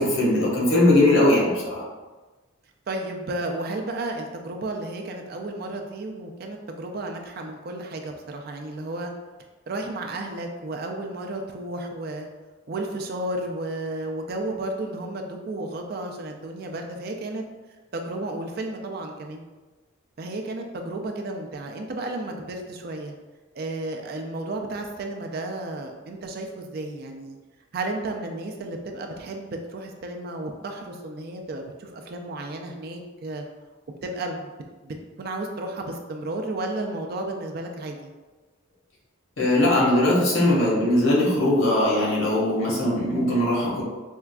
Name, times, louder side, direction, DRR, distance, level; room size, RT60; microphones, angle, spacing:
voice 1, 0.0-1.8 39.4-43.8, left 1 dB, 75° left, -5 dB, 1.1 m, -20 dB
voice 2, 2.9-9.1 9.7-12.3 12.7-17.4 17.9-19.5 20.2-23.1 23.6-27.4 27.7-33.4 34.0-34.5 34.8-38.1, right 2 dB, 45° right, 3 dB, 0.3 m, -33 dB
4.4 x 2.4 x 2.2 m, 1.2 s
head